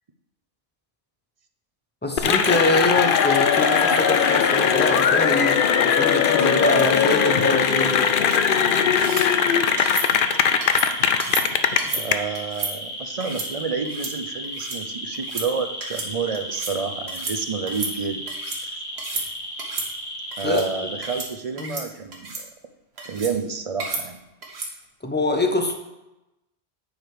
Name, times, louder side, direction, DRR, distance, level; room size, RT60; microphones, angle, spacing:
voice 1, 2.0-8.5 20.4-20.6 21.6-21.8 25.0-25.7, left 2 dB, 10° left, 4 dB, 0.8 m, -24 dB
Cheering / Applause, 2.2-12.1, left 7 dB, 60° left, 0.7 m, -19 dB
sound 1, 2.4-5.0 5.5-21.2, equal, 30° left, 2.0 m, -34 dB
sound 2, 9.0-9.3 9.8-10.1 10.6-10.9 11.2-11.4 11.8-12.0 12.3-12.7 13.2-13.5 13.8-14.1 14.4-14.8 15.1-15.5 15.8-16.1 16.3-16.7 17.1-17.4 17.7-18.6 19.0-19.3 19.6-19.9 20.3-20.6 21.0-21.3 21.6-21.8 22.1-22.4 23.0-23.3 23.8-24.0 24.4-24.7, right 3 dB, 80° right, 1.7 m, -32 dB
voice 2, 11.8-18.2 18.6-18.8 20.4-22.5 23.0-24.2, right 5 dB, 40° right, 8 dB, 0.6 m, -29 dB
9.5 x 5.1 x 4.8 m, 0.95 s
omnidirectional pair, 1.1 m